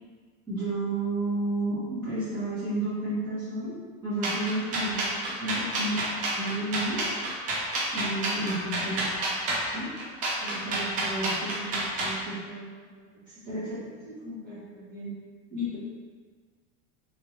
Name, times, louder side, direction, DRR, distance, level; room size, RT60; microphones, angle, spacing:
voice 1, 0.5-3.8 4.0-7.2 7.9-9.1 9.6-9.9 10.4-15.1 15.5-15.8, right 1 dB, 5° right, -18 dB, 1.1 m, -32 dB
sound 1, 4.2-12.2, right 2 dB, 25° right, 0.4 m, -29 dB
3.1 x 2.6 x 2.9 m, 1.5 s
supercardioid pair, 160°, 36 cm